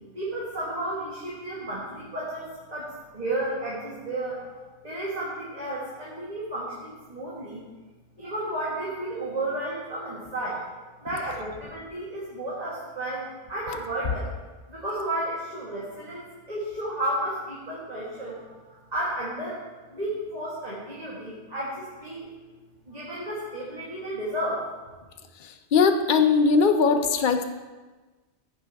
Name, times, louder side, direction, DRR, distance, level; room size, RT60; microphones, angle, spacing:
voice 1, 0.1-7.6 8.2-10.6 11.0-14.2 14.7-19.6 19.9-22.3 22.9-24.7, right 1 dB, 35° right, -7 dB, 1.9 m, -32 dB
voice 2, 25.4-27.4, left 5 dB, 55° left, 6 dB, 0.8 m, -20 dB
15.0 x 5.4 x 3.5 m, 1.3 s
omnidirectional pair, 1.1 m